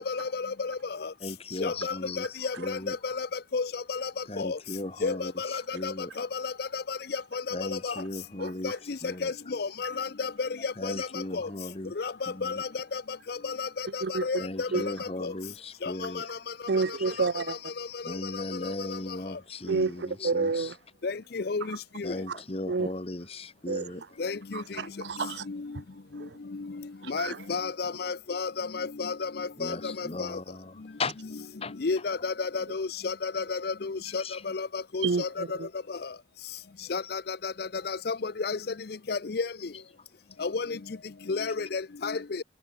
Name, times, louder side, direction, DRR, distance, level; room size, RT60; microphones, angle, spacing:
voice 1, 0.0-1.1 1.6-3.3 3.5-4.1 4.4-4.6 5.0-7.9 8.6-8.8 9.2-11.5 12.0-13.0 13.3-15.3 15.8-16.4 17.2-18.4 21.0-22.1 24.2-24.6 25.5-25.6 27.1-30.4 31.8-35.4 36.9-38.6 39.1-39.5 40.4-40.8 41.3-42.4, left 4 dB, 55° left, 0.6 m, -32 dB
voice 2, 1.2-3.0 4.3-6.1 7.5-8.7 9.0-9.3 10.8-11.9 12.3-12.6 14.4-16.3 18.0-20.7 22.0-24.0 29.6-31.2 31.6-31.8 34.1-34.4 37.0-37.1, left 2 dB, 30° left, 1.4 m, -37 dB
voice 3, 16.7-17.6 19.7-20.8 22.3-22.4 22.7-22.9 23.7-23.9 24.5-25.5 26.2-26.4 27.0-27.4 35.0-35.7, right 4 dB, 65° right, 0.6 m, -29 dB
head